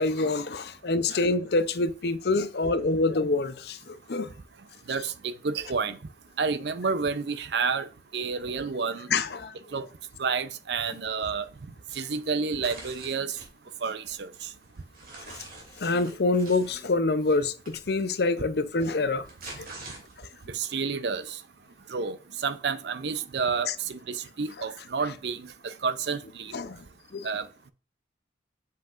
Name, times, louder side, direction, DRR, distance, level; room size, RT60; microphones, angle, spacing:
voice 1, 0.0-4.3 9.1-9.5 15.8-19.3 19.6-19.7 23.7-23.8 26.5-26.8 27.1-27.3, left 3 dB, 60° left, 0.6 m, -26 dB
voice 2, 4.9-6.0 6.4-7.9 8.1-9.1 9.7-9.8 10.2-11.5 11.9-13.4 13.8-14.5 20.5-21.4 21.9-26.5 27.2-27.5, right 5 dB, 70° right, 0.5 m, -30 dB
sound 1, 12.6-13.5 14.0-16.8 17.6-17.8 19.0-20.4, right 2 dB, 50° right, 2.5 m, -45 dB
7.6 x 5.7 x 2.5 m
head